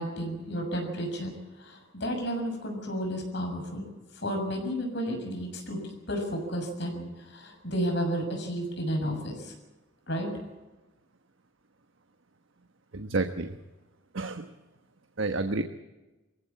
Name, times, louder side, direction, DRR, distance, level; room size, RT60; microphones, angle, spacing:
voice 1, 0.0-1.3 1.6-3.9 4.2-9.5 10.1-10.3, equal, 60° left, 3 dB, 6.7 m, -32 dB
voice 2, 12.9-13.6 14.1-14.5 15.2-15.6, right 3 dB, 75° right, 7 dB, 1.2 m, -29 dB
23.0 x 16.0 x 8.6 m, 1.1 s
head